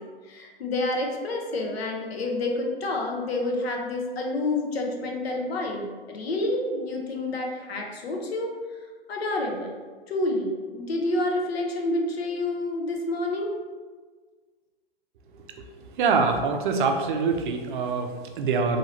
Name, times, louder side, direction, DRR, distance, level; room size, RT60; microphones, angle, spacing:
voice 1, 0.0-8.6 9.1-9.8 10.1-13.6, left 2 dB, 90° left, 1 dB, 0.8 m, -28 dB
voice 2, 16.0-18.8, right 4 dB, 55° right, 5 dB, 0.5 m, -24 dB
2.8 x 2.7 x 2.8 m, 1.4 s
hypercardioid pair, 150°, 30 cm